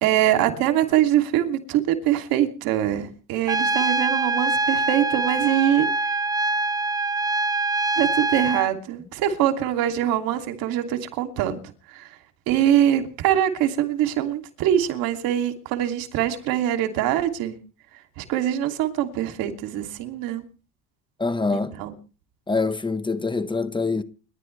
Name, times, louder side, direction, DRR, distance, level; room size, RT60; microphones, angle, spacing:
voice 1, 0.0-5.9 8.0-11.6 11.9-12.1 12.5-17.6 18.2-20.4 21.5-21.9, right 11 dB, 85° right, 2.9 m, -23 dB
Trumpet, 3.5-8.7, right 3 dB, 10° right, 0.8 m, -24 dB
voice 2, 21.2-21.7 22.5-24.0, left 3 dB, 15° left, 1.3 m, -25 dB
29.5 x 11.5 x 3.3 m
cardioid pair, 115°, 34 cm